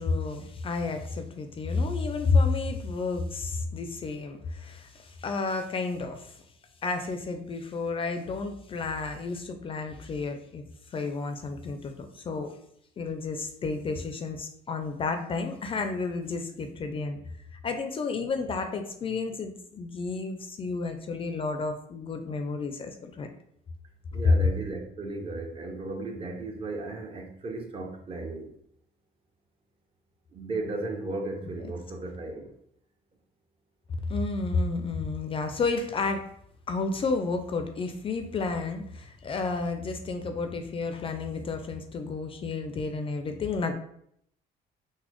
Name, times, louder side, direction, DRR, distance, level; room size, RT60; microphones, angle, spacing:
voice 1, 0.0-6.3 6.8-10.6 10.9-12.5 13.0-17.2 17.6-23.3 34.1-36.3 36.7-43.7, left 4 dB, 35° left, 0.3 m, -31 dB
voice 2, 24.1-28.5 30.3-32.5, right 2 dB, 35° right, 0.6 m, -35 dB
3.9 x 2.1 x 2.9 m
cardioid pair, 110°, 17 cm